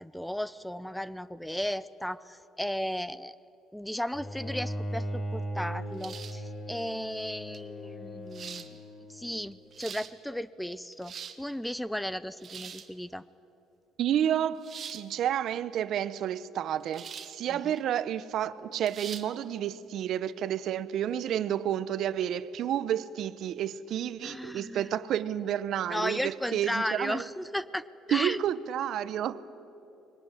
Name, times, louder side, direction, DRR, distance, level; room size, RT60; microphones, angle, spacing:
voice 1, 0.0-3.4 3.7-8.6 9.1-13.2 17.5-17.8 24.2-24.9 25.9-28.4, equal, 5° left, 0.5 m, -35 dB
Bowed string instrument, 4.1-9.3, equal, 45° left, 5.6 m, -38 dB
sound 1, 6.0-6.5 7.5-7.6 8.3-8.7 9.5-10.1 10.8-11.4 12.4-12.9 14.6-15.0 16.9-17.4 17.8-17.9 18.9-19.3, right 7 dB, 45° right, 1.4 m, -42 dB
voice 2, 14.0-14.6 14.9-27.2 28.1-29.4, right 10 dB, 60° right, 0.8 m, -30 dB
22.0 x 19.0 x 9.8 m
cardioid pair, 110°, 0 cm